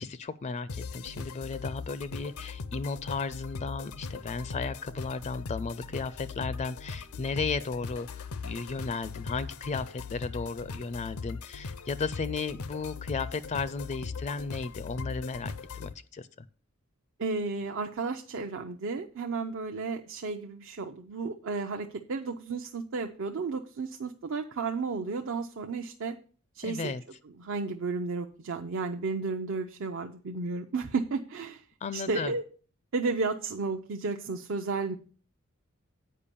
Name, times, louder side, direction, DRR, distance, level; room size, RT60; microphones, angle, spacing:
voice 1, 0.0-16.3 26.6-27.0 31.8-32.3, left 4 dB, 35° left, 0.4 m, -35 dB
sound 1, 0.7-15.9, left 4 dB, 85° left, 0.6 m, -40 dB
voice 2, 17.2-26.2 26.5-26.9 27.4-31.6 31.9-32.4 32.9-35.0, right 4 dB, 65° right, 0.6 m, -33 dB
8.6 x 5.3 x 6.7 m
head